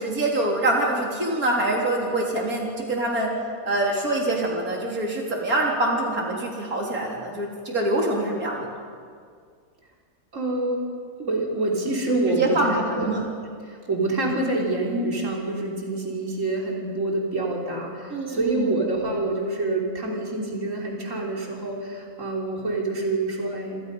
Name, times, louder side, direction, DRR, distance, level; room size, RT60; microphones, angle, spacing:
voice 1, 0.0-3.3 3.6-8.7 12.3-13.2 18.1-18.7, right 1 dB, 85° right, -2 dB, 4.1 m, -25 dB
voice 2, 10.3-10.8 11.2-13.1 13.6-23.8, right 2 dB, 60° right, -2 dB, 3.9 m, -26 dB
27.5 x 26.5 x 5.4 m, 2.1 s
omnidirectional pair, 1.5 m